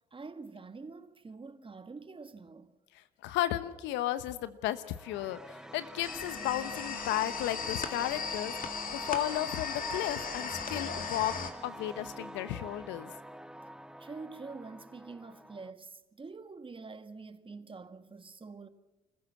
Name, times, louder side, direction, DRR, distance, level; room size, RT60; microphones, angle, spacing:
voice 1, 0.1-2.8 14.0-18.7, right 4 dB, 25° right, 1.5 m, -46 dB
voice 2, 2.9-11.3 11.6-13.1, left 13 dB, 75° left, 1.0 m, -34 dB
sound 1, 4.7-15.7, right 1 dB, 5° right, 0.8 m, -45 dB
sound 2, 6.0-11.5, left 6 dB, 45° left, 2.3 m, -37 dB
26.0 x 15.0 x 7.3 m
hypercardioid pair, 55°, 19 cm